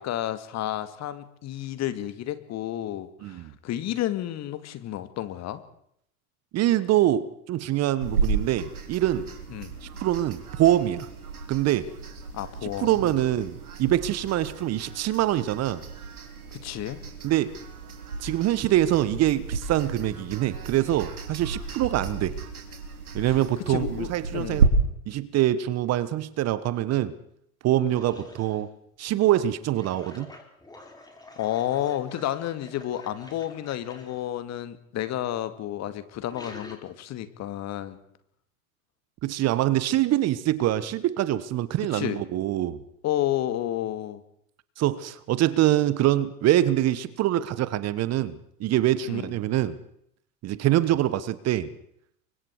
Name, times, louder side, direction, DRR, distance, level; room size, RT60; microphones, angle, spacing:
voice 1, 0.0-5.6 9.5-9.7 12.3-13.1 16.5-17.0 23.2-23.4 23.7-24.6 31.4-38.0 41.8-42.2 43.0-44.2 49.1-49.3, left 12 dB, 35° left, 12 dB, 2.2 m, -31 dB
voice 2, 6.5-9.3 9.8-11.1 11.5-11.9 12.6-15.8 17.2-17.6 18.2-22.4 23.1-24.7 25.1-27.2 27.6-28.7 29.0-30.3 39.2-42.8 44.8-49.8 50.4-51.7, right 13 dB, 35° right, 17 dB, 1.3 m, -24 dB
sound 1, 8.0-24.7, right 5 dB, 80° right, 3.8 m, -33 dB
sound 2, 27.9-28.7 29.6-34.2 35.6-36.8, left 2 dB, 10° left, 4.9 m, -48 dB
29.5 x 24.0 x 4.8 m, 0.71 s
figure-of-eight pair, 85°, 43 cm